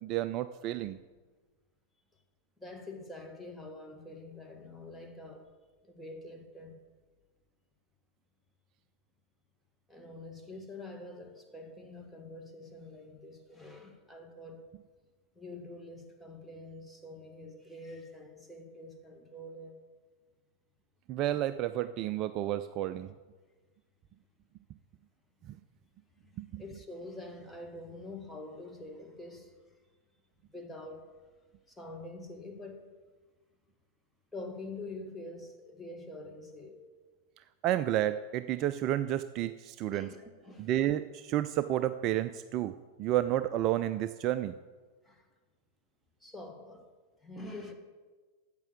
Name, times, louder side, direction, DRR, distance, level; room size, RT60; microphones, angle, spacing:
voice 1, 0.0-1.0 21.1-23.1 26.4-26.6 37.6-40.1 40.6-42.7 43.0-44.5, right 13 dB, 40° right, 0.4 m, -31 dB
voice 2, 2.6-5.5 5.8-6.8 9.9-14.7 15.3-19.9 26.5-29.5 30.5-31.2 31.7-32.9 34.3-36.9 39.9-40.7 45.0-45.3 46.2-46.9 47.2-47.7, left 2 dB, 5° left, 1.6 m, -46 dB
9.0 x 7.5 x 8.1 m
figure-of-eight pair, 90°, 0 cm